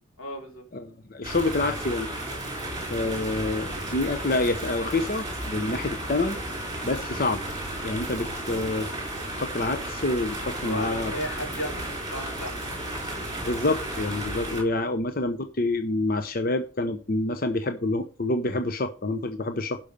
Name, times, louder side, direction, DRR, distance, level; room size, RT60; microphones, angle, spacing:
voice 1, 0.2-0.6 10.6-12.8, equal, 85° left, 3.9 m, -35 dB
voice 2, 1.1-2.1 2.8-6.4 6.8-7.4 7.8-8.9 9.3-11.1 13.4-19.8, left 2 dB, 45° left, 0.7 m, -27 dB
sound 1, 1.2-14.6, right 1 dB, 20° right, 4.0 m, -33 dB
11.5 x 5.6 x 5.2 m
head